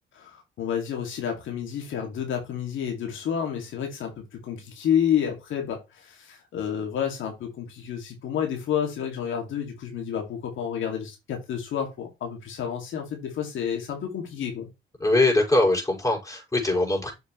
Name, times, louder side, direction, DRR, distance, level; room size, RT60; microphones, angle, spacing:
voice 1, 0.1-14.7, left 8 dB, 75° left, 2.3 m, -30 dB
voice 2, 15.0-17.1, left 2 dB, 15° left, 5.5 m, -22 dB
7.7 x 6.6 x 3.1 m
cardioid pair, 90°, 20 cm